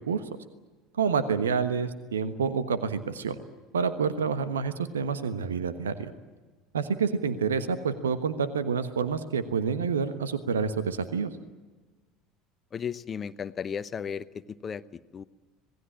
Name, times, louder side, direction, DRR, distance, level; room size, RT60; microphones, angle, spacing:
voice 1, 1.0-3.4 3.7-6.1 6.7-11.3, right 6 dB, 75° right, 12 dB, 1.3 m, -28 dB
voice 2, 12.7-15.2, left 7 dB, 30° left, 14 dB, 0.8 m, -35 dB
26.5 x 19.0 x 8.8 m, 1.3 s
figure-of-eight pair, 65°, 0 cm